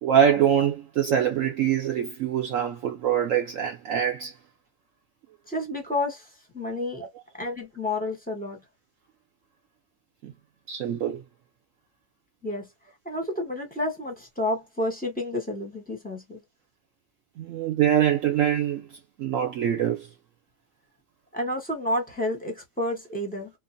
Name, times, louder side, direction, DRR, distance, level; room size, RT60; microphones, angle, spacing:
voice 1, 0.0-4.3 7.0-7.1 10.2-10.3 10.7-11.2 17.4-18.9 19.2-20.1, right 9 dB, 65° right, 0.9 m, -24 dB
voice 2, 5.5-6.3 6.5-7.0 7.4-8.6 12.4-12.7 13.0-16.4 21.3-23.5, left 1 dB, 10° left, 0.7 m, -30 dB
2.8 x 2.1 x 2.5 m
omnidirectional pair, 1.6 m